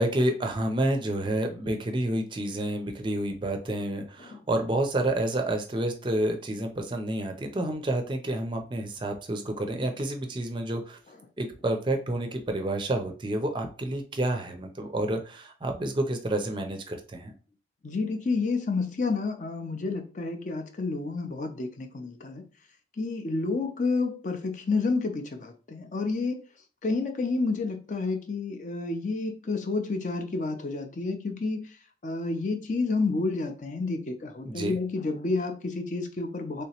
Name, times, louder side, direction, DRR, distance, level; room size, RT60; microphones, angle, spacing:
voice 1, 0.0-11.0 11.4-17.3 34.5-34.8, right 1 dB, 25° right, 0.4 m, -29 dB
voice 2, 17.8-22.4 23.0-26.4 26.8-36.6, left 3 dB, 45° left, 0.4 m, -30 dB
3.3 x 2.9 x 2.8 m
head